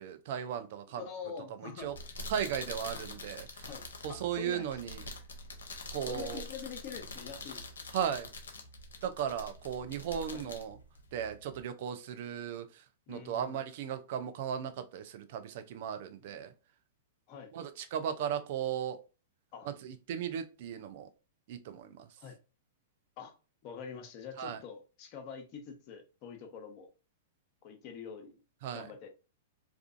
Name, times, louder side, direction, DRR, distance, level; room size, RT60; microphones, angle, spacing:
voice 1, 0.0-1.0 1.6-1.9 2.3-3.7 4.0-5.0 5.9-6.4 7.9-8.3 9.0-10.8 11.1-12.8 13.1-16.5 17.5-19.0 19.6-21.1 21.5-22.1 24.4-24.6 28.6-28.9, right 9 dB, 60° right, 0.4 m, -36 dB
voice 2, 1.0-1.9 3.7-3.8 4.1-4.7 6.1-7.6 10.3-10.4 13.1-13.6 16.3-16.4 17.3-17.5 19.5-19.7 22.2-22.4 23.2-23.3 23.6-26.9 27.6-28.4 28.7-29.1, left 7 dB, 45° left, 0.7 m, -45 dB
sound 1, 1.8-11.6, left 2 dB, 85° left, 0.6 m, -45 dB
2.5 x 2.3 x 2.5 m
hypercardioid pair, 115°, 0 cm